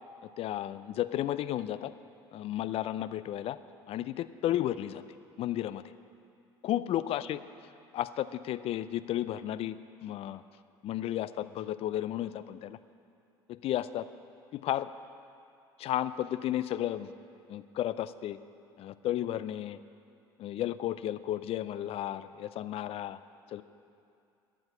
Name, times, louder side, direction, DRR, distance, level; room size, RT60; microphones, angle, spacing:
voice 1, 0.4-1.9 2.3-3.6 3.9-5.0 5.4-5.9 6.6-7.4 7.9-10.4 10.8-12.8 13.5-14.1 14.5-14.9 15.8-17.1 17.5-18.4 18.8-19.8 20.4-23.2 23.5-23.6, left 12 dB, 50° left, 14 dB, 0.5 m, -33 dB
13.5 x 9.3 x 8.0 m, 2.5 s
hypercardioid pair, 70°, 13 cm